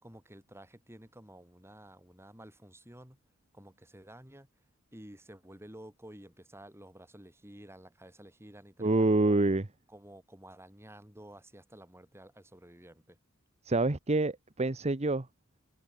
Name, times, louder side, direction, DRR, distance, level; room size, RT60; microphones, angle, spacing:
voice 1, 0.0-3.2 3.5-4.5 4.9-9.4 9.9-13.2, right 1 dB, 10° right, 5.3 m, -52 dB
voice 2, 8.8-9.7 13.7-15.3, right 2 dB, 30° right, 1.0 m, -27 dB
head